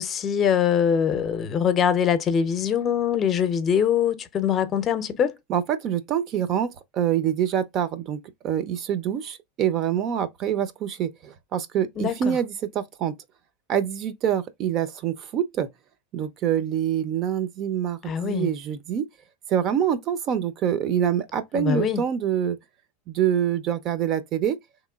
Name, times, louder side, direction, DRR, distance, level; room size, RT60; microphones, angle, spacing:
voice 1, 0.0-5.3 12.0-12.4 18.1-18.5 21.5-22.0, left 8 dB, 35° left, 0.6 m, -23 dB
voice 2, 5.5-6.7 6.9-8.2 8.4-13.1 13.7-15.7 16.1-19.0 19.5-22.6 23.1-24.6, right 9 dB, 45° right, 0.6 m, -25 dB
3.5 x 3.0 x 2.3 m
hypercardioid pair, 105°, 0 cm